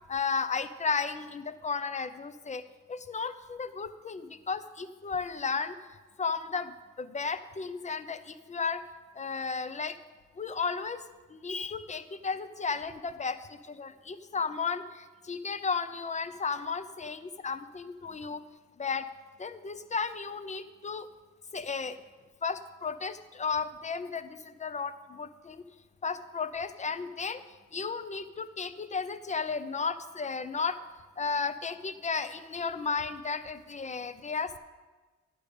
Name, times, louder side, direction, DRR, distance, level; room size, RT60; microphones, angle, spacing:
voice 1, 0.1-2.6 2.9-5.8 6.2-8.8 9.1-10.0 10.3-18.4 18.8-19.1 19.4-21.1 21.5-22.0 22.4-25.6 26.0-27.4 27.7-30.8 31.2-34.6, left 5 dB, 25° left, 12 dB, 0.6 m, -34 dB
10.0 x 5.2 x 6.7 m, 1.3 s
cardioid pair, 90°, 30 cm